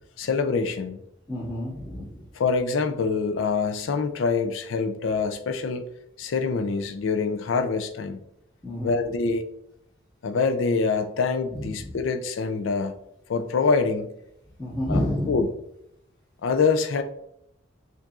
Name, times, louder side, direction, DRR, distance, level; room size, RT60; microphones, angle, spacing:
voice 1, 0.2-1.0 2.4-5.9 6.2-8.2 8.8-9.5 10.2-12.9 13.3-14.1 14.9-15.0 15.3-15.5 16.4-17.0, left 4 dB, 75° left, 7 dB, 0.4 m, -25 dB
voice 2, 1.3-2.2 8.6-9.0 11.5-12.0 14.6-15.3, left 1 dB, 20° left, -13 dB, 1.7 m, -29 dB
7.1 x 2.6 x 2.4 m, 0.76 s
head